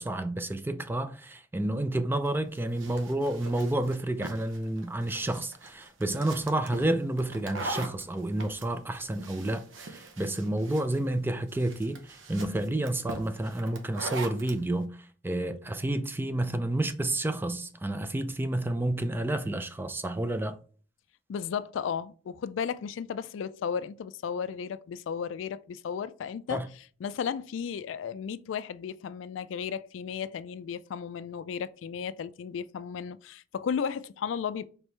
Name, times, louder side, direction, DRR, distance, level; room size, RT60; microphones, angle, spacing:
voice 1, 0.0-20.6 26.5-26.7, right 1 dB, 10° right, 0.4 m, -30 dB
sound 1, 2.2-14.6, right 2 dB, 85° right, 0.8 m, -42 dB
voice 2, 21.3-26.6 27.0-34.7, left 7 dB, 75° left, 0.3 m, -34 dB
4.5 x 3.3 x 3.2 m
head